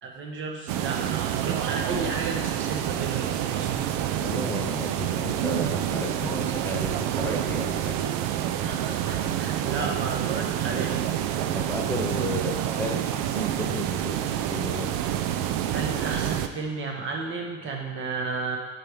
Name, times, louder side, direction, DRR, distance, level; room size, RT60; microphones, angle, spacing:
voice 1, 0.0-3.7 8.6-11.7 15.7-18.6, right 3 dB, 30° right, 1 dB, 1.0 m, -33 dB
sound 1, 0.7-16.5, right 11 dB, 65° right, 0.5 m, -28 dB
voice 2, 4.2-8.0 11.5-14.9, left 2 dB, 5° left, 2 dB, 0.4 m, -34 dB
8.8 x 4.6 x 3.4 m, 1.4 s
cardioid pair, 155°, 37 cm